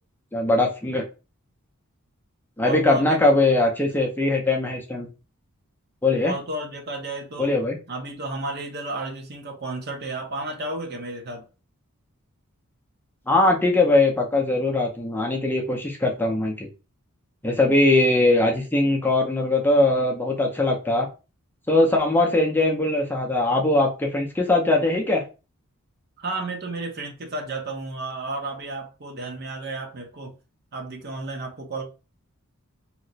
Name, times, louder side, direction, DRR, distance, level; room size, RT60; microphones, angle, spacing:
voice 1, 0.3-1.0 2.6-5.1 6.0-6.3 7.4-7.8 13.3-16.7 17.4-21.1 21.7-25.2, left 2 dB, 10° left, 0.5 m, -21 dB
voice 2, 2.6-3.3 6.2-7.5 7.9-11.5 26.2-30.4 30.7-31.8, right 2 dB, 45° right, 0.7 m, -32 dB
2.9 x 2.1 x 3.9 m
head